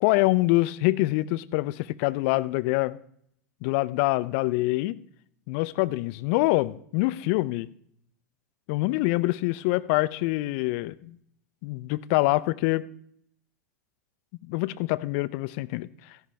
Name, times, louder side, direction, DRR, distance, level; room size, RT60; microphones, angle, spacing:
voice 1, 0.0-3.0 3.6-5.0 5.5-7.7 8.7-11.2 11.6-12.9 14.5-16.3, left 20 dB, 50° left, 0.5 m, -25 dB
13.5 x 10.5 x 3.4 m
hypercardioid pair, 95°, 9 cm